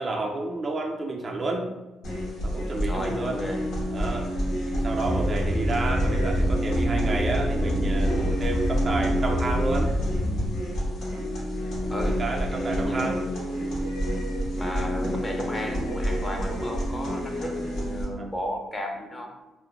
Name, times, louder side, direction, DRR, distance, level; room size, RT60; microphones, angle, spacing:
voice 1, 0.0-1.7 2.4-3.4 3.9-4.3 4.7-9.9 12.0-13.2 17.4-17.5 18.2-18.3, right 2 dB, 35° right, 1 dB, 0.3 m, -30 dB
sound 1, 2.0-18.0, equal, 75° left, 1.0 m, -29 dB
voice 2, 2.8-3.6 11.9-12.2 12.5-13.4 14.6-19.3, left 1 dB, 20° left, 1 dB, 0.5 m, -33 dB
sound 2, 5.0-10.5, equal, 60° left, 0.6 m, -27 dB
2.4 x 2.1 x 3.0 m, 1.1 s
cardioid pair, 90°, 0 cm